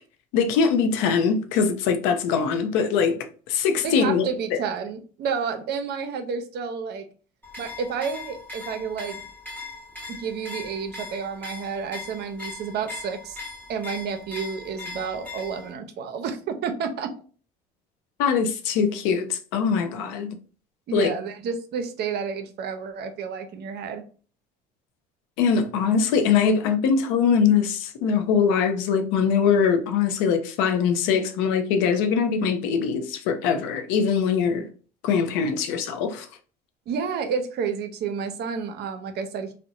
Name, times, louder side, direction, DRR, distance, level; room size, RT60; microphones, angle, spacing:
voice 1, 0.3-3.2 3.5-4.6 18.2-20.3 20.9-21.1 25.4-34.7 35.0-36.3, left 6 dB, 75° left, 0.5 m, -22 dB
voice 2, 3.8-7.1 7.6-9.2 10.1-13.4 13.7-17.1 20.9-24.0 36.9-39.5, right 6 dB, 55° right, 0.6 m, -30 dB
sound 1, 7.4-15.7, left 3 dB, 10° left, 0.9 m, -39 dB
2.7 x 2.1 x 2.5 m
supercardioid pair, 80°, 20 cm